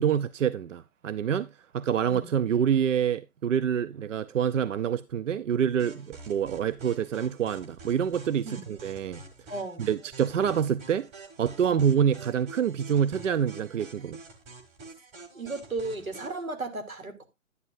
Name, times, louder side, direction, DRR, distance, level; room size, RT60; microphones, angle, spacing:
voice 1, 0.0-1.5 1.7-9.2 9.8-11.1 11.4-14.2, right 8 dB, 65° right, 0.6 m, -26 dB
sound 1, 5.8-16.4, right 3 dB, 15° right, 1.5 m, -48 dB
voice 2, 9.5-9.9 11.6-11.8 15.3-17.3, right 3 dB, 90° right, 2.8 m, -35 dB
11.0 x 9.7 x 2.6 m
hypercardioid pair, 150°, 41 cm